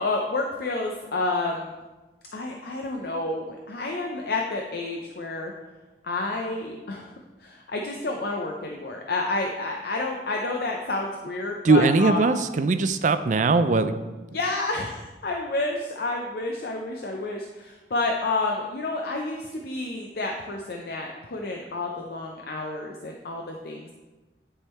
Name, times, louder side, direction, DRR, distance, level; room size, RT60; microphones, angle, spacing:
voice 1, 0.0-1.7 2.3-5.5 6.0-7.1 7.4-12.2 14.3-23.9, left 2 dB, 60° left, 1 dB, 0.6 m, -30 dB
voice 2, 11.6-14.0, right 3 dB, 45° right, 10 dB, 0.4 m, -20 dB
9.9 x 3.6 x 4.3 m, 1.2 s
head